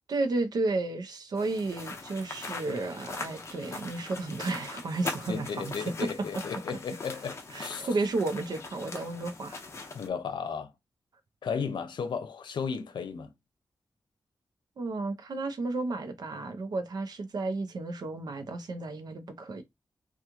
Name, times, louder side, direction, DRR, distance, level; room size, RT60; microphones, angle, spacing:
voice 1, 0.1-6.1 7.5-9.6 14.8-19.6, right 3 dB, 60° right, 0.6 m, -32 dB
sound 1, 1.4-10.1, left 3 dB, 35° left, 0.6 m, -41 dB
voice 2, 5.3-7.9 9.9-10.7 11.4-13.3, left 6 dB, 90° left, 0.7 m, -34 dB
2.9 x 2.4 x 3.5 m
wide cardioid pair, 170°, 8 cm